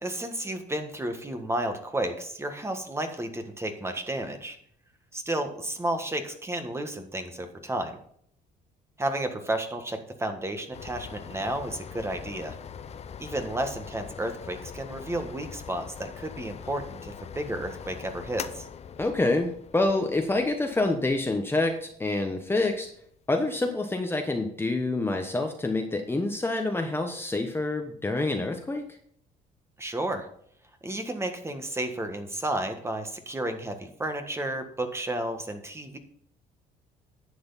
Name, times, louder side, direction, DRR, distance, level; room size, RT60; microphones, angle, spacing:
voice 1, 0.0-4.6 5.1-8.0 9.0-12.5 13.2-18.7 29.8-30.3 30.8-36.0, right 1 dB, 15° right, 6 dB, 1.5 m, -32 dB
sound 1, 10.7-23.2, left 7 dB, 40° left, 0.7 m, -42 dB
voice 2, 19.0-22.9 23.3-29.0, left 2 dB, 15° left, 4 dB, 1.1 m, -27 dB
11.0 x 7.8 x 4.1 m, 0.63 s
cardioid pair, 110°, 17 cm